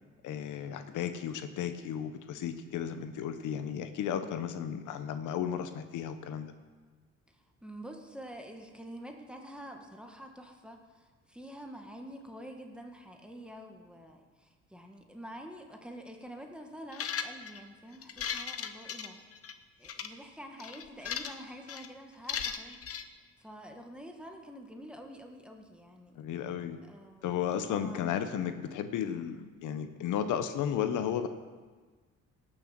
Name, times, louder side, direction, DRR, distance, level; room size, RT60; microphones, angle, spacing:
voice 1, 0.2-6.5 26.2-26.8 27.2-31.3, left 9 dB, 85° left, 9 dB, 0.9 m, -34 dB
voice 2, 4.2-4.5 7.3-19.2 19.8-22.8 23.4-26.2 26.8-27.3 27.6-28.1, equal, 5° right, 3 dB, 1.7 m, -47 dB
sound 1, 16.9-17.6 18.0-19.5 19.8-20.1 20.6-21.4 21.7-21.9 22.3-23.0, left 7 dB, 50° left, 0.9 m, -37 dB
18.0 x 6.8 x 6.0 m, 1.4 s
cardioid pair, 90°, 30 cm